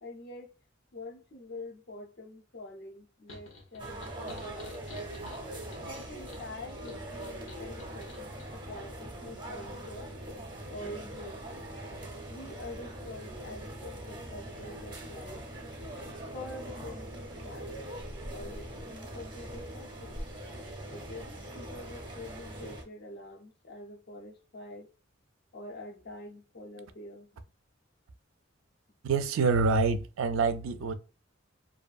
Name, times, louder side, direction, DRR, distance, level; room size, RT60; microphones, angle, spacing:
voice 1, 0.0-0.5 0.9-4.9 5.8-10.1 10.7-11.7 12.3-15.4 16.3-17.7 18.1-20.2 20.9-24.9 25.5-27.3, left 2 dB, 55° left, 0.5 m, -46 dB
sound 1, 3.3-8.5, left 2 dB, 90° left, 0.8 m, -49 dB
sound 2, 3.8-22.8, right 1 dB, 25° right, 0.6 m, -42 dB
voice 2, 29.0-30.9, right 4 dB, 80° right, 0.3 m, -26 dB
2.6 x 2.5 x 2.3 m
head